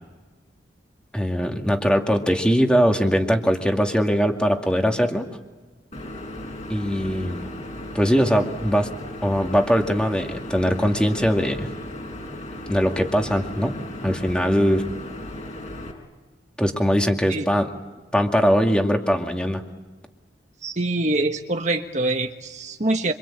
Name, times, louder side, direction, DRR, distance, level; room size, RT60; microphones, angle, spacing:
voice 1, 1.1-5.3 6.7-7.4 7.9-8.9 9.2-11.7 12.7-13.8 14.0-14.8 16.6-17.7 18.1-19.6, equal, 5° left, 3 dB, 2.3 m, -21 dB
sound 1, 5.9-15.9, left 1 dB, 40° left, 5.0 m, -36 dB
voice 2, 20.6-23.1, right 2 dB, 40° right, 5 dB, 1.4 m, -24 dB
26.5 x 25.5 x 8.7 m, 1.3 s
head